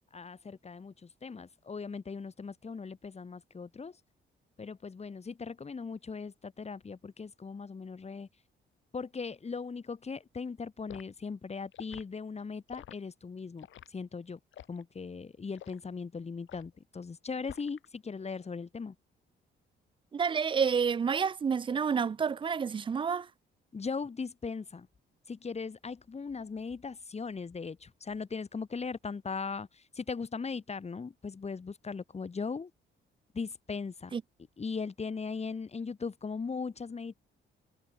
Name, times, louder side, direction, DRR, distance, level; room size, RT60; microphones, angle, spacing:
voice 1, 0.1-3.9 4.6-8.3 8.9-13.7 13.9-14.4 14.7-18.9 23.7-24.9 25.3-29.7 30.0-32.7 33.3-34.1 34.6-37.1, left 5 dB, 30° left, 3.9 m, -39 dB
Liquid, 10.9-11.1 11.7-12.1 12.7-13.0 13.6-13.9 14.5-14.8 15.6-15.8 16.5-16.8 17.4-17.9 18.2-18.5, left 11 dB, 75° left, 7.4 m, -48 dB
voice 2, 20.1-23.3 34.1-34.2, right 6 dB, 25° right, 0.4 m, -29 dB
cardioid pair, 90°, 20 cm